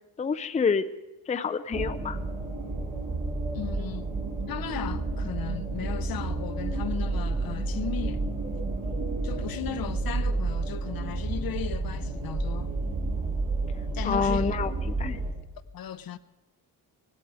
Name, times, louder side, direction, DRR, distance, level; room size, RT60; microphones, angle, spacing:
voice 1, 0.2-0.9 1.3-2.2 14.0-15.2, left 5 dB, 20° left, 0.5 m, -27 dB
sound 1, 1.7-15.3, right 3 dB, 55° right, 2.8 m, -30 dB
voice 2, 3.5-4.1 4.5-8.2 9.2-12.7 13.9-14.6 15.7-16.2, left 9 dB, 70° left, 0.8 m, -36 dB
18.0 x 16.0 x 4.8 m
wide cardioid pair, 140°, 37 cm